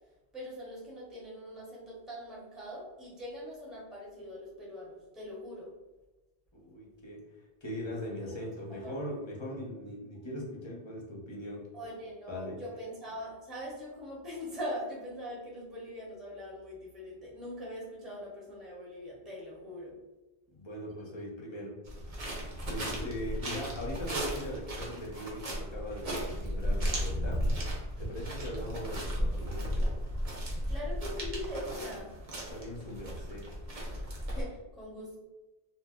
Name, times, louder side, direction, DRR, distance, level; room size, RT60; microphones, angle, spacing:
voice 1, 0.3-5.7 8.3-8.4 8.8-8.9 11.7-19.9 30.7-32.1 34.3-35.2, equal, ahead, -5 dB, 0.7 m, -42 dB
voice 2, 6.5-7.2 7.6-11.7 12.3-12.6 20.5-21.8 22.6-27.4 28.0-29.8 32.5-33.5, left 1 dB, 35° left, -2 dB, 0.5 m, -40 dB
sound 1, 21.9-34.4, equal, 40° right, 0.7 m, -35 dB
2.7 x 2.0 x 3.5 m, 1.1 s
omnidirectional pair, 1.1 m